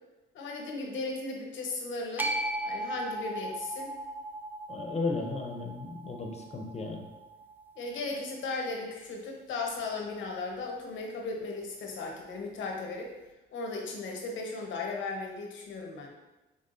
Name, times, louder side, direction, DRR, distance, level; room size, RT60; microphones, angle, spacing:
voice 1, 0.3-2.3 2.6-3.9 7.8-13.1 13.5-16.1, left 3 dB, 70° left, 0 dB, 1.0 m, -36 dB
sound 1, 2.2-8.4, right 1 dB, 10° right, 0.4 m, -38 dB
voice 2, 4.7-7.0, left 3 dB, 35° left, 2 dB, 0.7 m, -34 dB
5.5 x 3.6 x 2.6 m, 1.1 s
cardioid pair, 90°, 20 cm